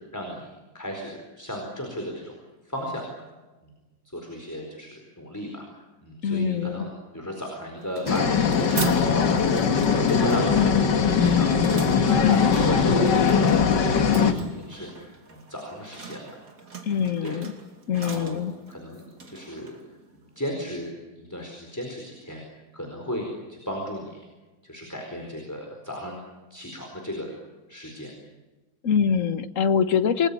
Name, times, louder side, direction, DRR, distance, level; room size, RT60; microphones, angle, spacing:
voice 1, 0.1-0.5 0.7-2.3 2.6-3.0 3.6-3.7 4.1-5.6 6.0-6.9 7.1-11.8 12.0-16.4 17.2-17.4 18.0-18.4 18.7-19.0 19.3-19.8 20.4-22.4 22.7-24.2 24.6-26.2 26.5-27.3 27.7-28.1, equal, 10° left, 1 dB, 4.3 m, -35 dB
voice 2, 6.2-6.8 16.8-17.5 17.9-18.5 28.8-30.3, left 7 dB, 45° left, 10 dB, 1.4 m, -24 dB
sound 1, 7.8-20.9, right 5 dB, 45° right, 2.9 m, -39 dB
sound 2, 8.1-14.3, left 6 dB, 60° left, 2.1 m, -20 dB
28.5 x 20.5 x 8.5 m, 1.2 s
omnidirectional pair, 2.2 m